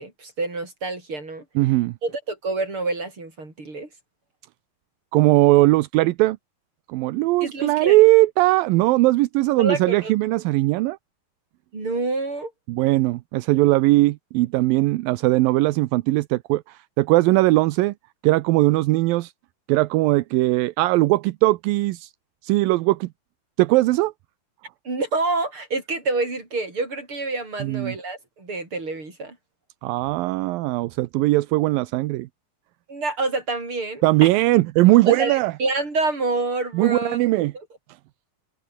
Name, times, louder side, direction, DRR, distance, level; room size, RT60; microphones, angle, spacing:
voice 1, 0.0-1.4 2.0-3.9 7.4-8.0 9.6-10.1 11.7-12.5 24.8-29.4 32.9-34.4 35.0-37.2, right 3 dB, 35° right, 7.8 m, -27 dB
voice 2, 1.6-1.9 5.1-6.4 6.9-11.0 12.7-17.9 18.2-19.3 19.7-22.1 22.4-23.1 23.6-24.1 27.6-28.0 29.8-32.3 34.0-35.5 36.7-37.5, right 19 dB, 80° right, 2.4 m, -19 dB
omnidirectional pair, 4.2 m